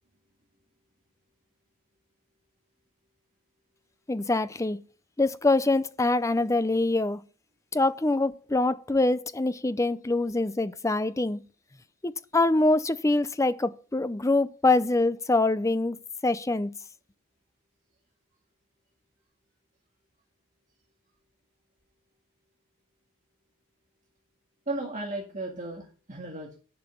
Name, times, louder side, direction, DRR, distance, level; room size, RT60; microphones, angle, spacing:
voice 1, 4.1-4.8 5.2-7.2 7.7-11.4 12.0-16.0 16.2-16.7, left 2 dB, 15° left, 0.4 m, -24 dB
voice 2, 24.7-26.6, right 2 dB, 35° right, 1.9 m, -35 dB
10.5 x 5.6 x 6.9 m
head